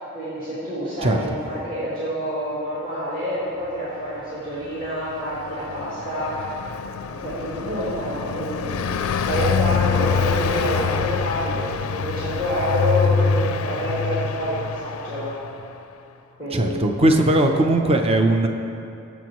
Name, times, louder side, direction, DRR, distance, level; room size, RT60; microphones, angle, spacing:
voice 1, 0.1-6.6 7.1-15.3 16.4-16.8, equal, 45° right, -11 dB, 2.6 m, -27 dB
Car passing by, 4.6-15.7, left 6 dB, 85° left, 0.4 m, -25 dB
voice 2, 16.5-18.5, right 1 dB, 30° right, 4 dB, 0.7 m, -18 dB
21.5 x 7.2 x 3.1 m, 2.7 s
head